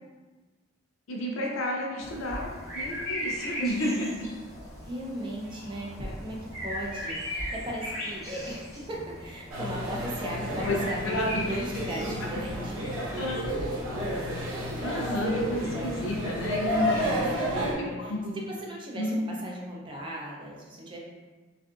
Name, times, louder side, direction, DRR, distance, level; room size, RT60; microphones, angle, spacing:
voice 1, 1.1-2.5 2.7-4.1 10.6-10.8 11.0-11.5 12.3-12.4 13.2-13.4 14.8-17.0 17.8-18.4 19.0-19.2, left 1 dB, 85° left, -1 dB, 0.5 m, -31 dB
sound 1, 2.0-15.0, equal, ahead, 1.4 m, -38 dB
voice 2, 4.8-13.0 16.8-19.1 19.4-21.0, equal, 25° right, -3 dB, 0.4 m, -37 dB
sound 2, 9.5-17.7, equal, 85° right, 0.7 m, -31 dB
2.6 x 2.5 x 2.3 m, 1.3 s
head